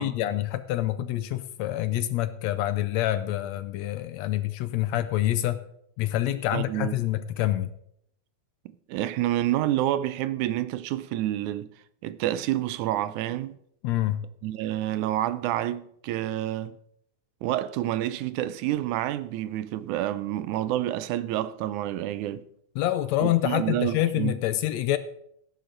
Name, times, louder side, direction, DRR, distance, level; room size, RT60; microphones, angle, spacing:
voice 1, 0.0-5.6 6.0-7.7 13.8-14.2 22.8-25.0, left 14 dB, 80° left, 1.7 m, -26 dB
voice 2, 6.5-6.9 8.9-11.7 12.0-13.6 14.4-16.8 17.4-22.4 23.2-24.4, right 13 dB, 85° right, 2.1 m, -28 dB
16.5 x 10.0 x 3.9 m
omnidirectional pair, 3.4 m